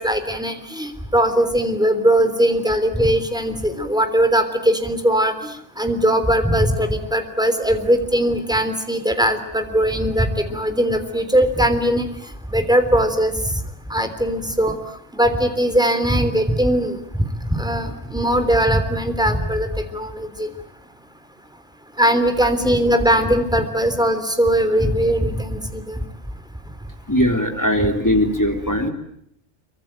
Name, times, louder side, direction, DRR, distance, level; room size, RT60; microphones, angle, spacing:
voice 1, 0.0-12.1 12.5-13.3 13.9-14.8 15.2-17.0 17.5-19.7 19.9-20.5 22.0-26.0, right 1 dB, 5° right, 8 dB, 3.4 m, -20 dB
voice 2, 27.1-28.9, equal, 15° left, 4 dB, 3.6 m, -19 dB
26.0 x 24.5 x 9.1 m, 0.72 s
omnidirectional pair, 1.2 m